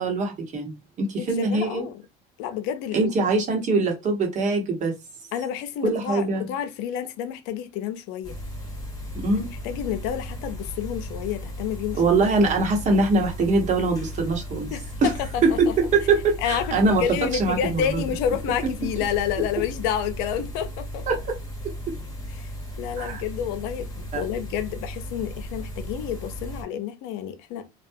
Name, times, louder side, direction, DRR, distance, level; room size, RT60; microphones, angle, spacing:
voice 1, 0.0-1.9 2.9-4.9 5.8-6.5 9.1-9.5 11.9-14.7 15.0-15.1 15.4-18.0 21.1-21.2 23.0-23.2 24.1-24.2, right 3 dB, 45° right, 1.1 m, -23 dB
voice 2, 1.2-2.0 2.4-3.1 5.3-8.4 9.6-12.0 14.7-15.7 16.4-21.0 22.3-22.5 22.8-27.7, left 9 dB, 75° left, 0.5 m, -29 dB
sound 1, 8.2-26.6, equal, 20° left, 1.0 m, -36 dB
2.3 x 2.2 x 2.6 m
supercardioid pair, 105°, 18 cm